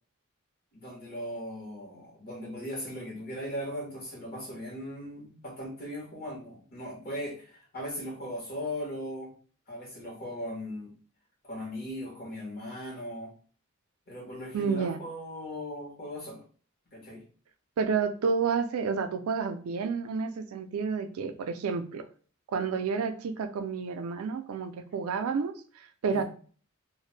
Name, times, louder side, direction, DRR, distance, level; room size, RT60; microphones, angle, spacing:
voice 1, 0.7-9.3 9.7-10.9 11.4-13.3 14.1-16.4 16.9-17.2 26.1-26.2, equal, 50° left, -2 dB, 1.0 m, -38 dB
voice 2, 14.5-15.0 17.8-22.1 22.5-26.2, right 5 dB, 85° right, 9 dB, 0.4 m, -30 dB
2.4 x 2.0 x 3.1 m, 0.42 s
head